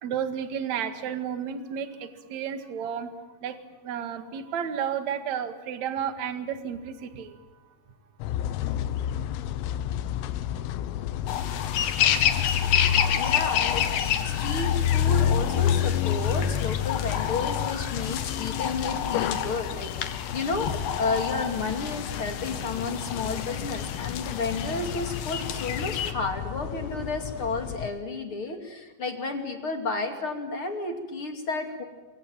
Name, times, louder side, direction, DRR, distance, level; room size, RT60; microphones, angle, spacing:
voice 1, 0.0-3.1 3.4-3.6 3.8-7.4, right 8 dB, 55° right, 9 dB, 2.1 m, -32 dB
sound 1, 8.2-27.9, left 10 dB, 80° left, 3.8 m, -30 dB
sound 2, 11.3-26.1, left 9 dB, 60° left, 2.7 m, -30 dB
voice 2, 13.1-31.8, left 3 dB, 35° left, 5 dB, 2.2 m, -32 dB
25.0 x 25.0 x 9.1 m, 1.2 s
omnidirectional pair, 6.0 m